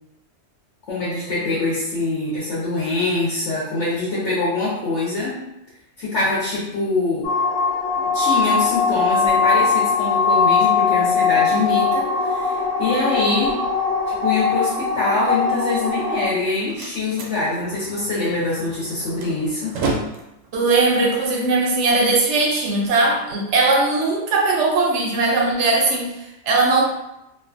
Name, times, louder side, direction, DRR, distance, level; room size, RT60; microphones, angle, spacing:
voice 1, 0.9-5.3 6.0-7.3 8.1-13.6 14.1-19.8, left 2 dB, 65° left, -7 dB, 1.0 m, -24 dB
sound 1, 7.2-16.3, left 5 dB, 85° left, 1.2 m, -20 dB
Slam, 16.2-22.2, right 3 dB, 90° right, 1.0 m, -33 dB
voice 2, 20.5-26.8, right 3 dB, 70° right, -1 dB, 0.8 m, -19 dB
2.5 x 2.4 x 2.4 m, 0.88 s
omnidirectional pair, 1.3 m